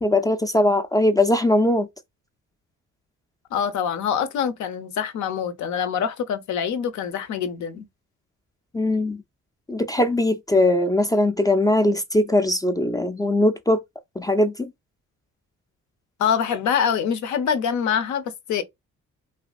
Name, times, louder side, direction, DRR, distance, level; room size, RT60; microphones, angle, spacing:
voice 1, 0.0-1.9 8.7-9.2 9.7-13.8 14.2-14.7, left 1 dB, 15° left, 0.3 m, -20 dB
voice 2, 3.5-7.9 16.2-18.6, left 7 dB, 70° left, 0.6 m, -25 dB
2.7 x 2.5 x 2.2 m
cardioid pair, 90°, 30 cm